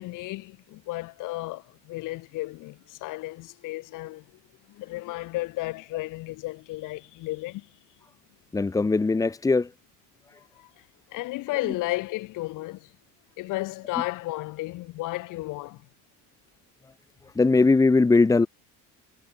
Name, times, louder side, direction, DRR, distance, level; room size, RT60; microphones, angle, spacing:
voice 1, 0.0-4.2 4.7-7.7 10.6-10.7 11.1-12.9 13.4-15.8, left 19 dB, 70° left, 8.0 m, -33 dB
voice 2, 8.5-9.7 11.6-11.7 17.3-18.5, left 3 dB, 10° left, 1.6 m, -20 dB
cardioid pair, 180°, 32 cm